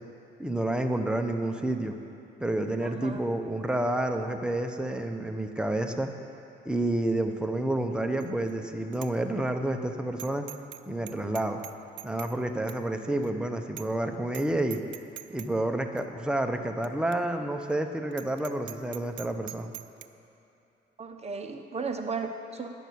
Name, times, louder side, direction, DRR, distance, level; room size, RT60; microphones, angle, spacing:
voice 1, 0.4-2.0 2.4-6.1 6.6-10.5 10.9-11.6 12.0-14.8 15.3-19.7, right 1 dB, 5° right, 5 dB, 0.8 m, -29 dB
voice 2, 2.8-3.2 21.0-22.7, right 4 dB, 30° right, 5 dB, 0.9 m, -35 dB
Bicycle bell, 8.2-8.5 8.9-9.1 9.5-9.6 10.2-10.8 11.1-12.4 12.7-12.8 13.2-13.3 13.8-14.0 14.3-14.5 14.7-15.5 16.0-16.1 16.8-16.9 17.1-17.2 17.6-17.7 18.1-20.1, right 15 dB, 70° right, 0.4 m, -43 dB
10.5 x 6.1 x 8.4 m, 2.8 s
cardioid pair, 90°, 20 cm